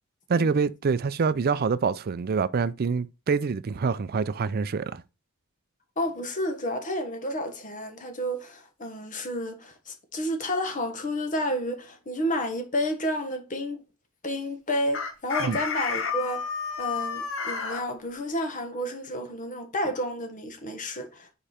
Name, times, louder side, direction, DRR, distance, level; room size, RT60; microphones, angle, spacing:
voice 1, 0.3-5.0 15.4-15.6, right 5 dB, 45° right, 0.4 m, -26 dB
voice 2, 6.0-13.8 14.2-16.4 16.8-21.3, equal, 35° left, 1.2 m, -31 dB
Chicken rooster, 14.9-17.8, left 6 dB, 60° left, 1.0 m, -30 dB
5.2 x 4.9 x 4.3 m
head